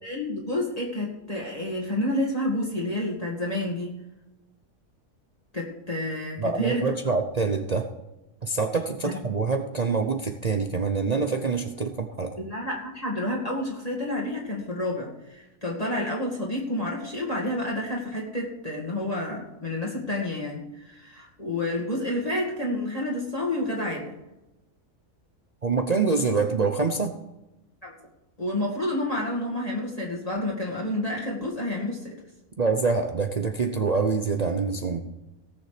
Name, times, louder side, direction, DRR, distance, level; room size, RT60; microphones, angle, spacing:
voice 1, 0.0-3.9 5.5-6.9 9.0-9.1 12.4-20.6 20.8-24.1 27.8-27.9 28.4-32.2, left 1 dB, 25° left, -3 dB, 2.3 m, -29 dB
voice 2, 6.4-7.9 8.4-12.3 25.6-27.1 32.6-35.0, right 4 dB, 35° right, 5 dB, 0.7 m, -25 dB
18.0 x 7.1 x 5.0 m, 0.97 s
omnidirectional pair, 1.4 m